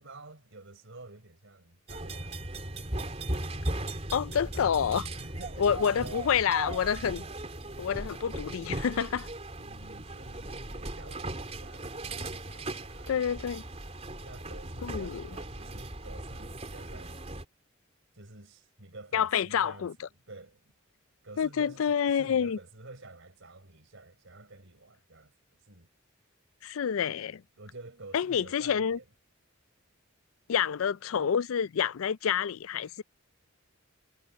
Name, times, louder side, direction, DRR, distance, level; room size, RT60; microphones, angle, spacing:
voice 1, 0.0-2.6 5.2-6.3 7.7-7.8 9.6-13.2 14.2-17.2 18.1-20.7 21.2-25.3 25.6-25.9 27.6-29.1, right 2 dB, 65° right, 4.3 m, -50 dB
sound 1, 1.9-17.4, right 1 dB, 30° right, 3.6 m, -38 dB
voice 2, 4.1-5.1 5.6-7.2 7.8-9.3 13.1-13.6 14.8-15.2 19.1-19.9 21.4-22.6 26.6-27.4 28.1-29.0 30.5-33.0, left 7 dB, 80° left, 0.4 m, -28 dB
head